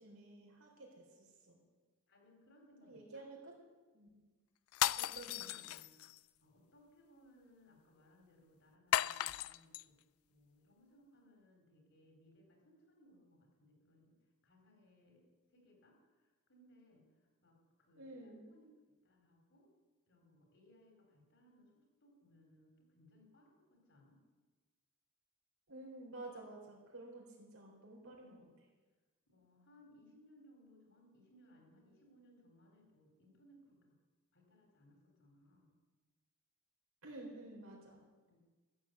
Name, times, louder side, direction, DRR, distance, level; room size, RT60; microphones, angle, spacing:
voice 1, 0.0-1.6 2.8-3.5 3.9-4.2 5.0-5.6 17.9-18.4 25.7-28.4 37.0-38.0, right 2 dB, 85° right, -1 dB, 4.0 m, -52 dB
voice 2, 2.1-3.3 5.1-6.1 6.4-9.9 10.3-14.2 14.4-17.1 17.4-18.7 19.0-19.7 20.1-24.2 28.1-28.5 29.3-34.0 34.3-35.7 38.3-38.4, left 1 dB, 60° left, 1 dB, 4.1 m, -66 dB
sound 1, 4.7-6.2 8.9-9.8, left 13 dB, 80° left, 0.3 m, -35 dB
14.0 x 7.8 x 8.2 m, 1.3 s
head